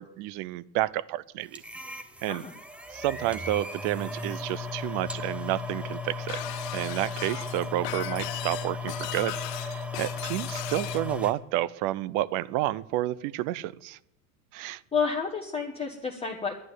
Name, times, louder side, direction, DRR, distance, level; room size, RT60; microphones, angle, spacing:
voice 1, 0.0-1.6 2.2-2.4 2.9-6.4 6.7-14.0 14.5-14.8, right 15 dB, 45° right, 21 dB, 0.5 m, -30 dB
sound 1, 1.5-11.3, left 3 dB, 5° right, 0.7 m, -36 dB
Shatter, 6.3-11.1, left 18 dB, 90° left, 0.6 m, -38 dB
voice 2, 14.9-16.5, left 5 dB, 10° left, 0 dB, 1.2 m, -30 dB
11.5 x 9.6 x 7.8 m, 0.82 s
supercardioid pair, 130°, 46 cm